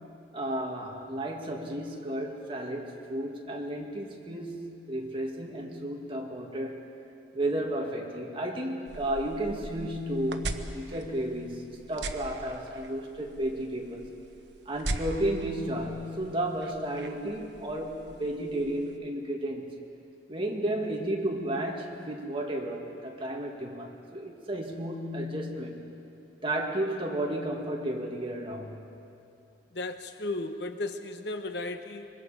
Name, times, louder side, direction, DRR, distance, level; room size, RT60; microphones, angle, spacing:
voice 1, 0.3-6.9 7.3-14.0 14.7-19.7 20.3-25.8 26.4-28.8, right 1 dB, 30° right, 0 dB, 2.3 m, -33 dB
sound 1, 8.9-19.0, right 2 dB, 70° right, 1.1 m, -41 dB
voice 2, 29.7-32.1, left 2 dB, 65° left, 8 dB, 1.1 m, -35 dB
25.5 x 23.5 x 5.2 m, 2.6 s
head